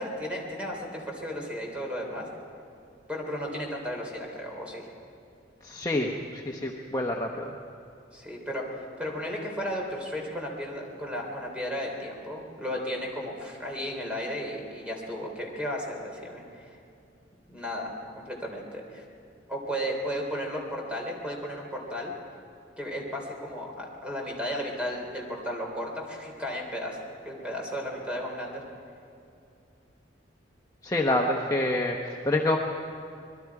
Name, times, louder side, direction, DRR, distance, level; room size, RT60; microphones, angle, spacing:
voice 1, 0.0-2.3 3.1-4.9 8.1-16.7 17.5-19.0 19.5-22.1 22.8-27.0 27.2-28.6, equal, 5° right, 0 dB, 3.5 m, -34 dB
voice 2, 5.6-7.5 30.8-32.6, left 1 dB, 20° left, 0 dB, 0.9 m, -27 dB
25.5 x 21.5 x 4.8 m, 2.5 s
head